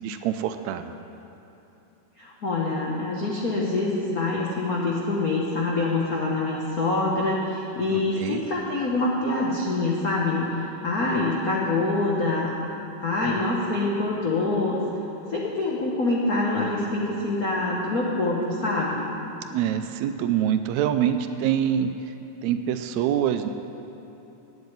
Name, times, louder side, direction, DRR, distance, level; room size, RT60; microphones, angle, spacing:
voice 1, 0.0-0.9 7.9-8.4 19.5-21.9 22.4-23.5, right 10 dB, 80° right, 9 dB, 1.8 m, -25 dB
voice 2, 2.2-12.6 13.0-14.8 15.3-19.0, left 2 dB, 85° left, -3 dB, 0.8 m, -25 dB
8.9 x 8.0 x 9.3 m, 2.9 s
omnidirectional pair, 3.4 m